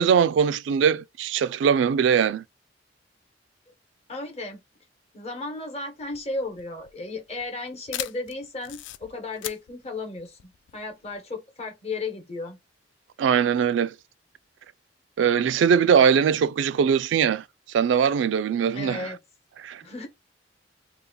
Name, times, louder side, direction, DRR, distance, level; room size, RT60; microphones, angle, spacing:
voice 1, 0.0-2.4 13.2-13.9 15.2-17.4 17.7-19.1 19.6-19.8, right 7 dB, 85° right, 0.3 m, -21 dB
voice 2, 4.1-4.6 5.1-12.6 18.7-19.2 19.8-20.1, left 3 dB, 35° left, 1.0 m, -34 dB
sound 1, 6.0-11.2, left 13 dB, 85° left, 0.3 m, -39 dB
2.7 x 2.3 x 3.7 m
head